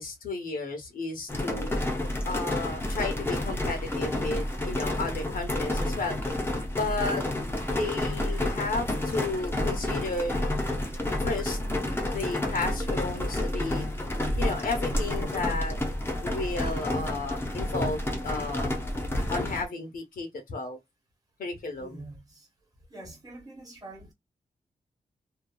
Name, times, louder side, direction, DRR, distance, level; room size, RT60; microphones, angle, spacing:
voice 1, 0.0-1.7 2.2-6.2 6.7-7.2 7.7-10.3 11.2-11.6 12.0-13.9 14.4-15.8 16.2-18.8 19.3-20.8 21.4-22.0, left 3 dB, 80° left, 0.9 m, -33 dB
sound 1, 1.3-19.6, left 1 dB, 15° left, 0.6 m, -30 dB
voice 2, 21.8-22.5 22.9-24.1, right 2 dB, 25° right, 1.1 m, -45 dB
2.7 x 2.3 x 2.2 m
wide cardioid pair, 145°, 15 cm